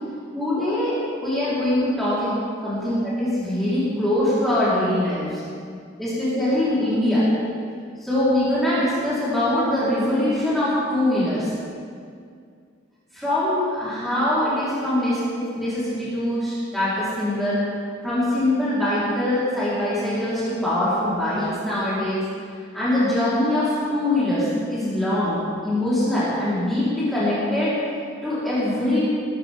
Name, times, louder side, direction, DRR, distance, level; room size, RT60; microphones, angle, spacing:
voice 1, 0.3-2.3 2.6-5.4 6.0-7.2 8.0-11.4 13.1-17.6 18.0-22.2 22.7-25.4 25.6-27.8 28.2-29.0, left 1 dB, ahead, -13 dB, 4.7 m, -23 dB
20.0 x 14.0 x 3.9 m, 2.2 s
head